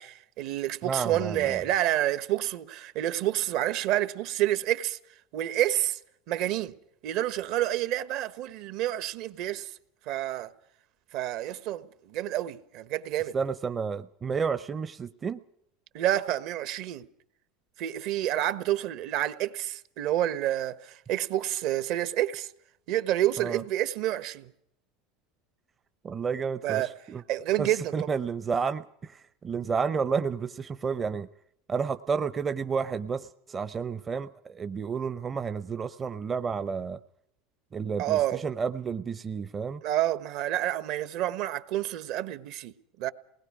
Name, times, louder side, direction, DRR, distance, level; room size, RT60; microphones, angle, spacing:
voice 1, 0.0-5.0 5.3-6.0 6.3-6.8 7.0-9.7 10.1-10.5 11.1-13.4 15.9-17.0 17.8-22.5 22.9-24.5 26.6-26.9 27.3-28.1 38.0-38.4 39.8-43.1, right 13 dB, 60° right, 1.3 m, -29 dB
voice 2, 0.8-1.6 13.3-15.4 23.4-23.6 26.0-27.2 27.6-31.3 31.7-37.0 37.7-39.8, right 5 dB, 25° right, 0.7 m, -31 dB
28.0 x 20.0 x 4.9 m
supercardioid pair, 130°, 0 cm